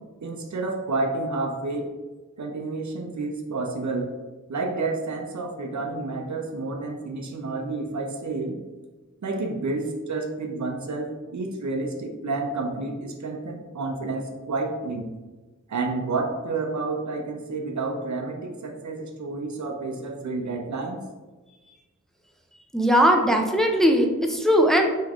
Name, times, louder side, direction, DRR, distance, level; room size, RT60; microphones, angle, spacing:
voice 1, 0.2-1.9 2.4-4.1 4.5-8.6 9.2-15.1 15.7-21.0, right 3 dB, 65° right, 2 dB, 0.5 m, -30 dB
voice 2, 22.7-24.8, equal, ahead, 2 dB, 0.3 m, -19 dB
3.4 x 3.0 x 2.4 m, 1.2 s
wide cardioid pair, 75°, 31 cm